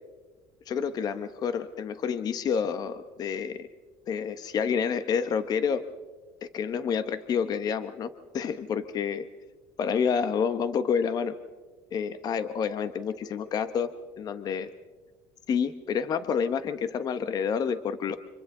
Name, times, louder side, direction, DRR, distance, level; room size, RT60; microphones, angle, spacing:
voice 1, 0.7-3.7 4.1-5.9 6.4-9.3 9.8-11.4 11.9-14.7 15.5-18.2, left 6 dB, 40° left, 12 dB, 0.9 m, -29 dB
29.5 x 26.0 x 3.8 m, 1.3 s
cardioid pair, 130°, 10 cm